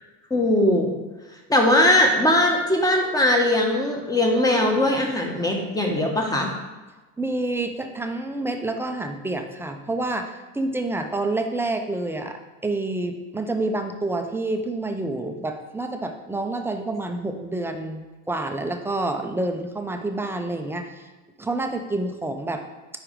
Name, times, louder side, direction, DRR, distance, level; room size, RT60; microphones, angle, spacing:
voice 1, 0.3-0.9 1.5-6.5, left 1 dB, 10° left, 1 dB, 1.0 m, -20 dB
voice 2, 7.2-21.1 21.4-22.6, right 2 dB, 5° right, 5 dB, 0.5 m, -28 dB
4.9 x 4.7 x 4.9 m, 1.2 s
supercardioid pair, 115°, 33 cm